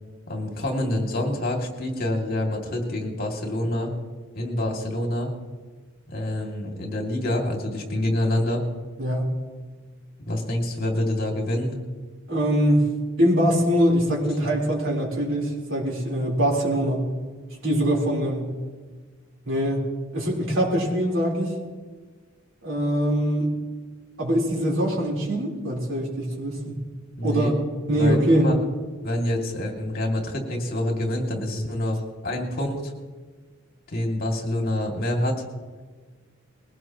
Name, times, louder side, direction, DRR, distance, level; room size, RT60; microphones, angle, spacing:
voice 1, 0.3-3.9 4.3-5.3 6.1-8.6 10.3-11.8 27.2-27.5 27.9-28.6 29.0-32.9 33.9-35.4, left 1 dB, 50° left, 1 dB, 2.5 m, -26 dB
voice 2, 12.3-12.9 13.2-17.1 17.6-18.5 19.5-19.8 20.1-21.5 22.6-23.5 24.2-26.8 27.2-27.5 27.9-28.5, equal, 75° right, -2 dB, 4.0 m, -23 dB
21.0 x 17.5 x 3.0 m, 1.4 s
head